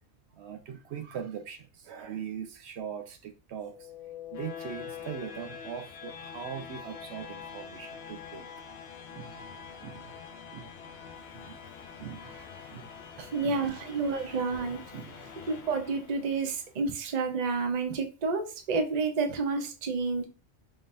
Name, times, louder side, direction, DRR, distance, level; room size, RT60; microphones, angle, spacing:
voice 1, 0.3-3.9 4.3-8.5 9.1-10.3 10.5-10.7 11.3-11.6 12.0-12.9 13.3-13.7 14.9-15.3, right 8 dB, 75° right, 0.9 m, -41 dB
sound 1, 3.6-16.6, left 7 dB, 65° left, 0.9 m, -45 dB
voice 2, 13.2-14.8 15.5-20.3, right 4 dB, 45° right, 0.7 m, -30 dB
3.8 x 3.8 x 2.5 m
omnidirectional pair, 1.2 m